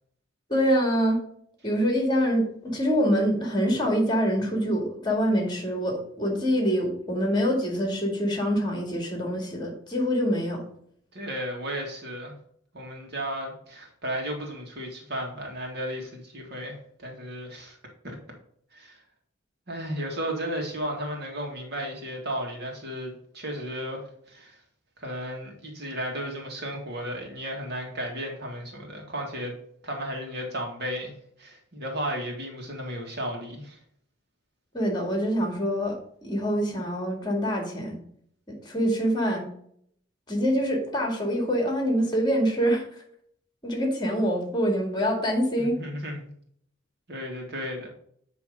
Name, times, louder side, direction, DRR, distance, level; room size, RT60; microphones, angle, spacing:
voice 1, 0.5-1.2 1.6-10.6 34.7-38.0 38.6-39.5 40.3-42.8 43.6-45.8, equal, 25° left, 1 dB, 2.1 m, -25 dB
voice 2, 11.1-12.3 12.7-17.8 18.0-18.2 18.7-19.0 19.7-24.6 25.0-29.5 29.8-33.8 45.6-46.3 47.1-47.9, equal, 55° right, 1 dB, 1.9 m, -34 dB
9.8 x 3.4 x 5.1 m, 0.66 s
head